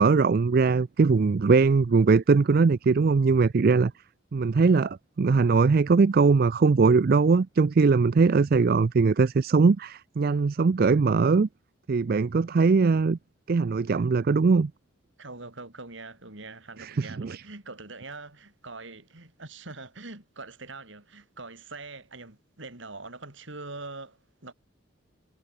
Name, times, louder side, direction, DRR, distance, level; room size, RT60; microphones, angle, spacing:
voice 1, 0.0-3.9 4.3-11.5 11.9-13.2 13.5-14.7 16.8-17.4, right 4 dB, 45° right, 0.4 m, -21 dB
voice 2, 15.2-24.5, right 3 dB, 65° right, 3.5 m, -43 dB
head